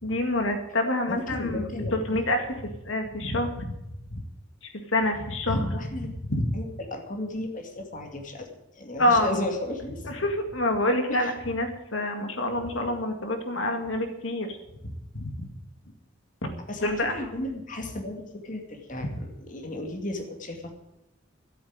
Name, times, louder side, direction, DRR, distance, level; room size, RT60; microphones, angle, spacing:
voice 1, 0.0-2.5 2.8-3.7 4.9-6.4 9.0-9.4 10.0-14.6 15.1-15.5 16.4-16.5 16.8-17.2, left 1 dB, 90° left, 5 dB, 2.0 m, -27 dB
voice 2, 1.1-2.2 5.5-6.1 6.5-8.5 8.7-10.0 11.1-11.3 16.7-20.7, left 1 dB, 40° left, 3 dB, 2.3 m, -34 dB
13.0 x 8.4 x 8.8 m, 0.90 s
head